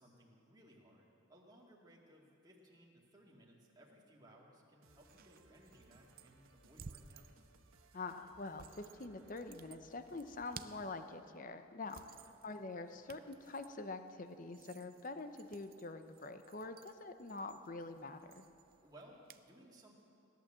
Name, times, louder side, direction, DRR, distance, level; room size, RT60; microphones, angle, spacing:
voice 1, 0.0-7.3 12.0-12.3 18.8-20.0, right 1 dB, 20° right, -4 dB, 2.2 m, -62 dB
sound 1, 4.8-11.1, right 2 dB, 85° right, 1.2 m, -67 dB
sound 2, 4.9-19.5, right 6 dB, 45° right, 0.5 m, -59 dB
voice 2, 7.9-12.1 12.4-18.4, left 3 dB, 40° left, 8 dB, 0.7 m, -46 dB
17.0 x 11.0 x 7.5 m, 2.5 s
head